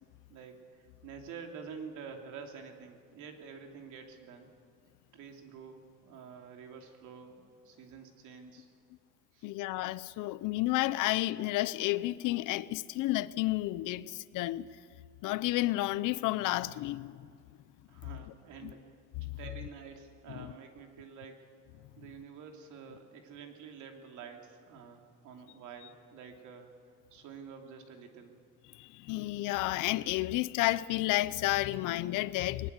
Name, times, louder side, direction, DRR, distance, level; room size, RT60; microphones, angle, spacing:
voice 1, 0.3-4.5 5.1-8.7 9.3-9.5 17.9-19.0 19.4-21.5 22.0-26.7 27.1-28.4, right 6 dB, 70° right, 2.9 m, -48 dB
voice 2, 9.4-14.7 15.2-17.3 18.6-18.7 19.2-19.4 20.3-20.5 28.7-32.7, left 17 dB, 80° left, 0.7 m, -31 dB
21.0 x 20.5 x 8.2 m
cardioid pair, 180°, 31 cm